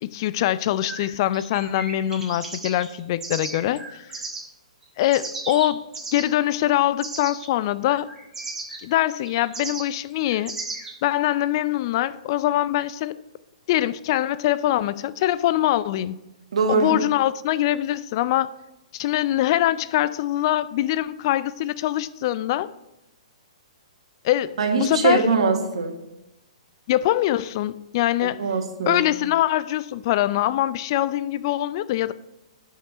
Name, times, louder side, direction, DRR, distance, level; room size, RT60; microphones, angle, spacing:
voice 1, 0.0-4.1 5.0-5.8 6.1-8.1 8.8-10.5 11.0-13.2 13.7-16.2 16.7-18.5 18.9-22.7 24.2-25.3 26.9-28.5 28.9-32.1, left 14 dB, 40° left, 0.4 m, -23 dB
sound 1, 0.8-4.4 4.8-6.4 7.0-7.5 7.9-10.9, right 3 dB, 10° right, 1.6 m, -35 dB
voice 2, 16.5-17.0 24.6-25.9 28.2-29.0, right 4 dB, 60° right, 1.5 m, -22 dB
8.7 x 5.5 x 5.1 m
figure-of-eight pair, 120°, 4 cm